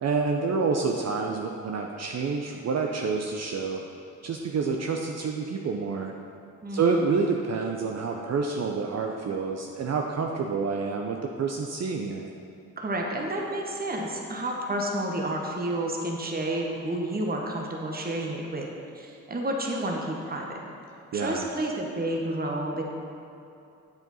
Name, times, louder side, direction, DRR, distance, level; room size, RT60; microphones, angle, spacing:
voice 1, 0.0-3.8 4.2-6.1 6.7-12.3 21.1-21.5, right 4 dB, 45° right, 2 dB, 0.6 m, -28 dB
voice 2, 6.6-7.2 12.8-18.7 18.9-20.6 21.1-22.8, right 1 dB, 25° right, 0 dB, 1.0 m, -30 dB
8.0 x 4.4 x 4.1 m, 2.8 s
supercardioid pair, 55°, 35 cm